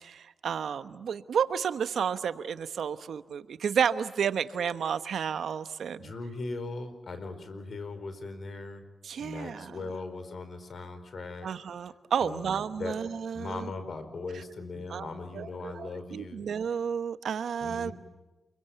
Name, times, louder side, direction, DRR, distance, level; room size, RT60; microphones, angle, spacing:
voice 1, 0.0-6.1 9.0-9.7 11.4-13.7 14.9-15.1 15.3-17.9, right 7 dB, 80° right, 12 dB, 1.1 m, -31 dB
voice 2, 6.0-8.8 9.2-11.5 12.2-13.0 13.3-16.5 17.6-17.9, left 3 dB, 60° left, 10 dB, 4.5 m, -39 dB
28.0 x 23.0 x 9.3 m, 1.1 s
cardioid pair, 60°, 0 cm